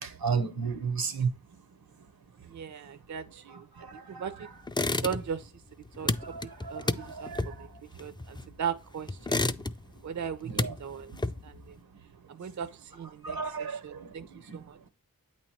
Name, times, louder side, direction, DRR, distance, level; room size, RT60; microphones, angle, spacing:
voice 1, 0.0-1.3 4.1-4.5 6.2-7.4 10.5-10.7 13.2-13.8, right 5 dB, 80° right, 0.8 m, -32 dB
voice 2, 2.5-3.6 4.1-4.5 5.0-5.5 6.0-6.1 6.4-6.9 7.2-7.7 8.0-9.4 10.0-11.1 11.4-11.7 12.3-14.8, right 7 dB, 50° right, 0.5 m, -38 dB
sound 1, 4.7-5.5 5.7-8.7 9.1-10.0 10.3-11.7, left 2 dB, 15° left, 0.3 m, -31 dB
8.4 x 3.0 x 4.3 m
cardioid pair, 40°, 36 cm